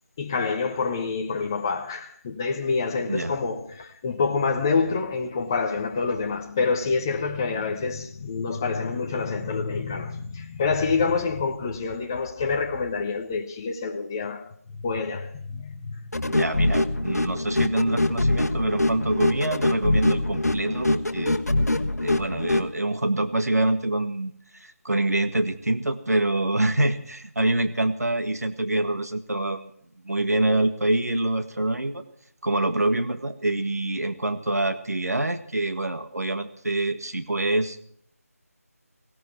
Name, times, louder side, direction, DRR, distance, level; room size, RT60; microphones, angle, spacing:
voice 1, 0.2-14.5 14.8-16.0, left 4 dB, 15° left, 0.8 m, -27 dB
sound 1, 16.1-22.7, left 2 dB, 75° left, 1.5 m, -24 dB
voice 2, 16.2-21.4 22.0-29.7 30.0-32.0 32.4-37.8, right 2 dB, 75° right, 1.8 m, -26 dB
17.5 x 17.5 x 4.6 m
figure-of-eight pair, 165°, 9 cm